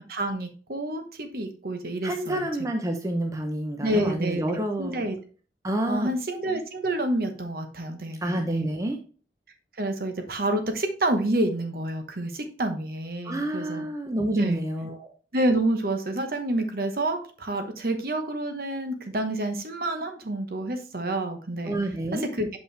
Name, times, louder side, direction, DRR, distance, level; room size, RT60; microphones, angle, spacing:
voice 1, 0.1-2.4 3.8-5.2 5.9-8.7 9.8-13.9 14.3-14.6 15.3-21.8 22.4-22.6, right 1 dB, 55° right, 6 dB, 1.0 m, -28 dB
voice 2, 2.0-5.1 5.6-6.1 8.2-9.0 13.2-15.1 21.7-22.3, right 1 dB, 20° right, 3 dB, 0.7 m, -29 dB
6.5 x 5.2 x 3.3 m, 0.39 s
head